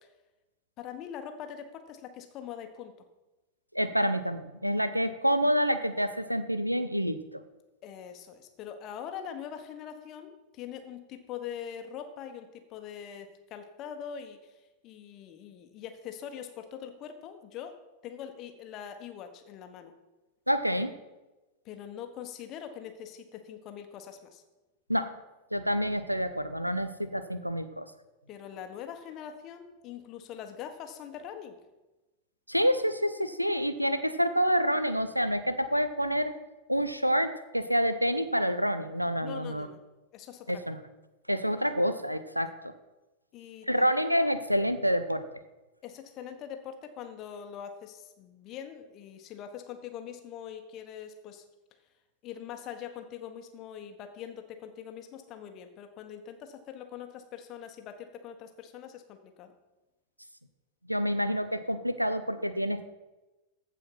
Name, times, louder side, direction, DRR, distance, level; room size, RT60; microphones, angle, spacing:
voice 1, 0.8-2.9 7.8-17.8 18.0-19.9 21.6-24.4 28.3-31.6 39.2-39.8 40.1-40.6 43.3-43.9 45.8-51.4 52.2-59.5, left 8 dB, 35° left, 7 dB, 1.3 m, -43 dB
voice 2, 3.7-7.4 20.5-20.9 24.9-25.1 25.5-27.9 32.5-36.4 36.7-39.7 40.5-40.8 41.3-42.7 43.7-45.2 60.9-62.9, equal, 90° right, 12 dB, 0.6 m, -28 dB
14.5 x 4.9 x 5.9 m, 1.1 s
figure-of-eight pair, 90°, 0 cm